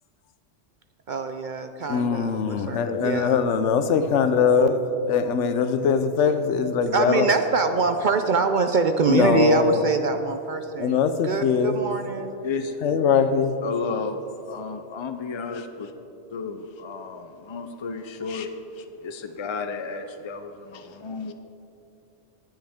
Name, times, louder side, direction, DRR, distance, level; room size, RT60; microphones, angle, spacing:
voice 1, 1.1-3.4 6.9-11.0 11.2-12.4, right 4 dB, 55° right, 7 dB, 0.6 m, -24 dB
voice 2, 1.9-7.3 9.1-9.9 10.8-11.8 12.8-13.6, left 6 dB, 80° left, 10 dB, 1.0 m, -22 dB
voice 3, 12.4-12.8 13.6-14.2 14.5-15.9 16.3-21.3, left 4 dB, 50° left, 7 dB, 0.3 m, -33 dB
20.5 x 7.5 x 3.6 m, 2.9 s
omnidirectional pair, 1.2 m